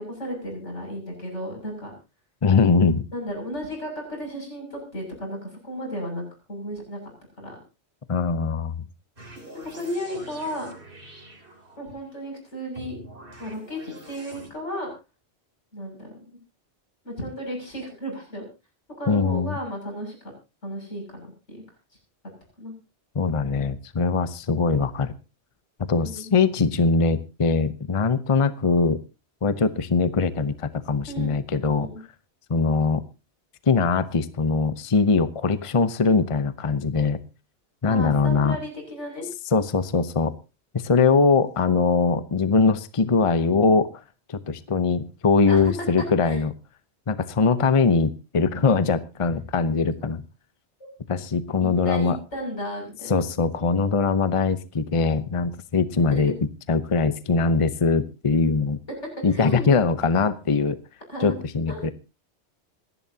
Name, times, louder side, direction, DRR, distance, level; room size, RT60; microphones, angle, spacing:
voice 1, 0.0-1.9 3.1-7.0 7.4-7.6 9.5-10.7 11.8-13.0 13.4-14.9 15.7-16.4 17.0-18.5 19.0-20.3 20.6-21.6 22.6-22.7 25.9-26.3 31.0-31.3 31.7-32.0 37.8-39.3 45.5-45.7 46.2-46.4 49.3-49.4 51.6-53.2 56.1-56.4 59.3-59.7 61.1-61.4 61.7-61.8, equal, 90° left, 1 dB, 7.2 m, -34 dB
voice 2, 2.4-3.0 8.1-8.8 19.1-19.6 23.1-25.1 25.9-29.0 29.4-31.9 32.5-33.0 33.7-37.2 37.8-38.6 39.5-40.3 40.7-43.9 44.3-46.5 47.1-50.2 51.1-52.2 53.1-56.3 56.7-58.8 59.2-60.8 61.2-61.9, left 4 dB, 30° left, 13 dB, 0.8 m, -22 dB
sound 1, 9.2-12.0 12.7-14.5, right 1 dB, 50° right, 3.5 m, -44 dB
26.5 x 11.0 x 2.8 m, 0.29 s
omnidirectional pair, 1.2 m